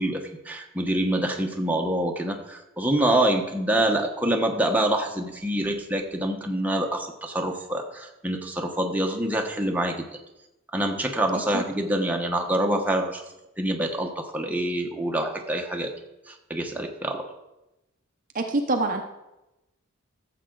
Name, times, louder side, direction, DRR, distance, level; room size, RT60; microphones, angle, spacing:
voice 1, 0.0-10.0 10.7-13.2 13.6-15.9 16.3-17.3, right 1 dB, 10° right, 2 dB, 1.0 m, -26 dB
voice 2, 18.3-19.0, right 2 dB, 40° right, 4 dB, 0.8 m, -25 dB
14.0 x 7.6 x 3.9 m, 0.96 s
head